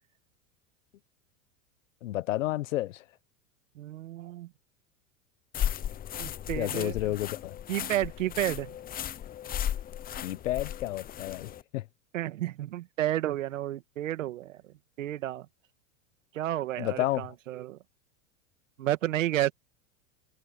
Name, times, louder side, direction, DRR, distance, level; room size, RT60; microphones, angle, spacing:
voice 1, 2.0-3.0 6.6-7.6 10.2-11.9 16.8-17.2, left 15 dB, 85° left, 1.3 m, -31 dB
voice 2, 3.8-4.5 6.2-7.1 7.7-8.8 12.1-14.6 15.0-15.5 16.3-17.8 18.8-19.5, right 13 dB, 90° right, 1.9 m, -31 dB
sound 1, 5.5-11.6, left 10 dB, 25° left, 0.7 m, -35 dB
supercardioid pair, 115°, 38 cm